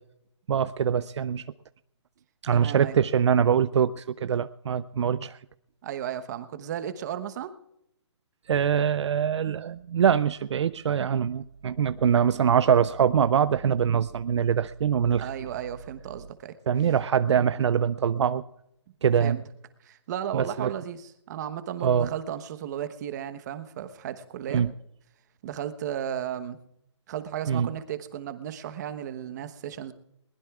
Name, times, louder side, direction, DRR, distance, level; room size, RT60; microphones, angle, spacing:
voice 1, 0.5-1.4 2.4-5.4 8.5-15.3 16.7-18.4 19.0-19.4 20.3-20.7 21.8-22.1 24.5-24.7 27.5-27.7, right 8 dB, 70° right, 14 dB, 0.5 m, -23 dB
voice 2, 2.5-3.0 5.8-7.5 15.2-16.5 19.2-19.4 19.8-24.6 25.4-26.6 27.1-29.9, right 10 dB, 35° right, 10 dB, 1.1 m, -34 dB
21.5 x 19.5 x 2.4 m, 0.80 s
hypercardioid pair, 160°, 15 cm